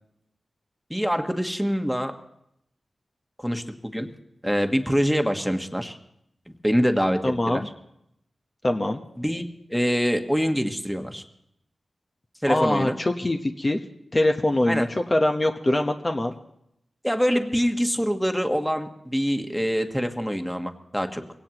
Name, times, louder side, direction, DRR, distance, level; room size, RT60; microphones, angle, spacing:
voice 1, 0.9-2.2 3.4-4.1 4.4-6.0 6.5-7.2 7.5-7.6 9.2-11.2 12.4-13.0 14.6-14.9 17.0-21.2, equal, ahead, 6 dB, 1.4 m, -25 dB
voice 2, 7.2-7.7 8.6-9.0 12.5-13.8 14.1-16.3, left 1 dB, 35° left, 4 dB, 1.0 m, -23 dB
22.5 x 17.5 x 3.0 m, 0.78 s
cardioid pair, 45°, 0 cm